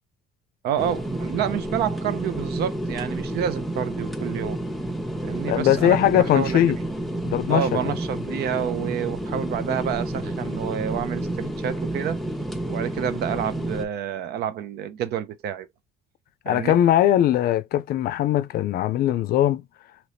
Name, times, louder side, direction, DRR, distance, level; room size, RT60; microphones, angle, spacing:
voice 1, 0.6-4.6 5.2-6.7 7.5-12.2 12.7-15.7 16.5-16.8, right 9 dB, 70° right, 0.6 m, -29 dB
sound 1, 0.8-13.9, right 1 dB, ahead, 0.6 m, -30 dB
voice 2, 5.5-6.8 7.2-7.9 16.5-19.6, left 12 dB, 65° left, 0.4 m, -20 dB
2.9 x 2.6 x 3.3 m
cardioid pair, 110°, 17 cm